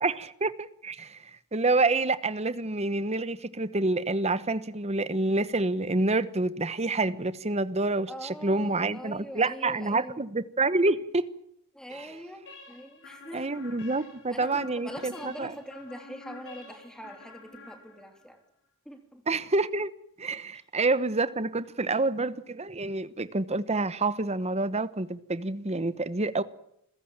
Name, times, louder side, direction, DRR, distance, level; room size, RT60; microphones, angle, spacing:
voice 1, 0.0-1.2 1.5-11.2 11.9-12.1 13.3-15.5 19.3-19.9 20.2-26.4, right 2 dB, 30° right, 1.1 m, -28 dB
voice 2, 8.1-10.3 11.7-13.5 14.3-18.4 18.8-19.2 20.5-20.6, equal, 5° left, 3.3 m, -43 dB
sound 1, 12.5-18.3, left 2 dB, 60° left, 6.8 m, -48 dB
28.0 x 15.5 x 8.9 m
head